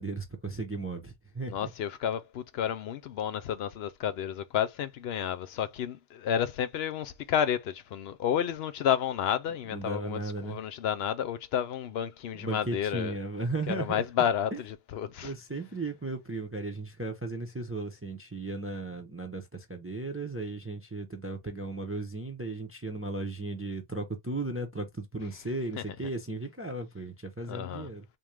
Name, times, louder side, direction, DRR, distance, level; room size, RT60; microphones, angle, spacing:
voice 1, 0.0-1.7 9.7-10.6 12.4-14.0 14.5-14.6 15.2-28.0, right 2 dB, 15° right, 0.5 m, -36 dB
voice 2, 1.5-13.2 13.7-15.3 25.8-25.9 27.5-27.9, left 9 dB, 65° left, 0.8 m, -31 dB
3.7 x 2.6 x 3.3 m
omnidirectional pair, 1.2 m